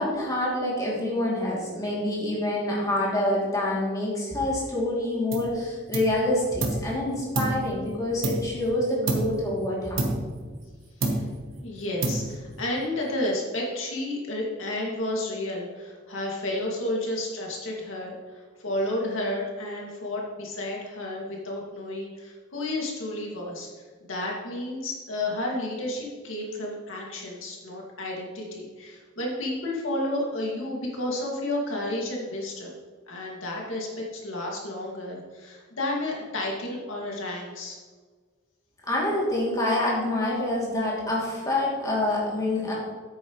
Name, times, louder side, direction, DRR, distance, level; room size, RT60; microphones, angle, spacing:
voice 1, 0.0-10.2 38.9-42.7, left 1 dB, 20° left, -5 dB, 2.7 m, -26 dB
sound 1, 5.3-5.6 5.9-6.9 7.3-8.7 9.1-9.5 10.0-10.7 11.0-11.5 12.0-12.6, right 2 dB, 80° right, 1.4 m, -29 dB
voice 2, 11.6-23.7 24.0-32.8 33.1-37.8, left 1 dB, 90° left, -2 dB, 2.2 m, -31 dB
10.0 x 8.8 x 3.1 m, 1.5 s
head